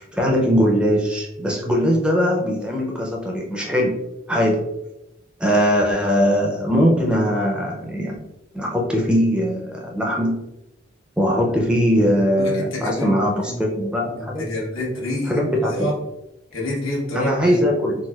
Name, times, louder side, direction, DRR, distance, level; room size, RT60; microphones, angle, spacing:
voice 1, 0.0-4.7 5.4-8.2 8.5-10.4 11.2-14.4 15.3-15.9 17.1-18.1, equal, 5° right, -1 dB, 0.4 m, -20 dB
voice 2, 12.4-13.1 13.4-13.6 14.4-15.4 15.7-15.9 16.5-17.6, left 1 dB, 85° left, -4 dB, 1.1 m, -27 dB
4.0 x 2.2 x 2.3 m, 0.91 s
head